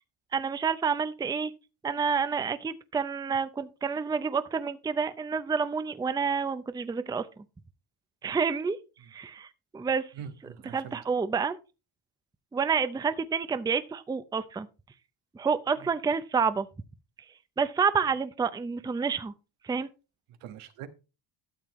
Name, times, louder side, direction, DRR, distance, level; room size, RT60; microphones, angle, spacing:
voice 1, 0.3-1.5 1.8-7.3 8.2-8.8 9.1-10.1 10.7-11.6 12.5-14.7 15.3-16.7 17.6-19.3 19.6-19.9, right 5 dB, 10° right, 0.5 m, -28 dB
voice 2, 10.1-11.0 15.8-15.9 20.3-20.9, right 9 dB, 85° right, 1.4 m, -43 dB
12.5 x 7.4 x 3.0 m
cardioid pair, 110°, 50 cm